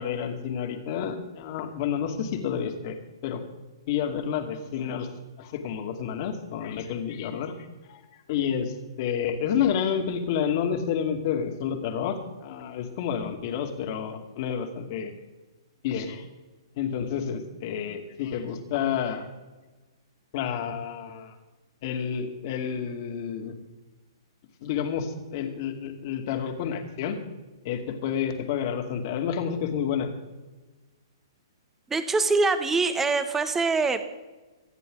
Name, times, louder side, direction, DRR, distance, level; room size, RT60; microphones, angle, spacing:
voice 1, 0.0-3.4 3.9-5.1 5.4-7.5 7.9-8.0 8.3-15.1 15.8-16.3 16.8-19.2 20.3-21.3 21.8-23.5 24.6-27.2 27.6-30.1, left 8 dB, 45° left, 5 dB, 2.5 m, -29 dB
voice 2, 31.9-34.0, right 3 dB, 10° right, 10 dB, 1.3 m, -24 dB
25.0 x 10.0 x 4.0 m, 1.2 s
hypercardioid pair, 125°, 3 cm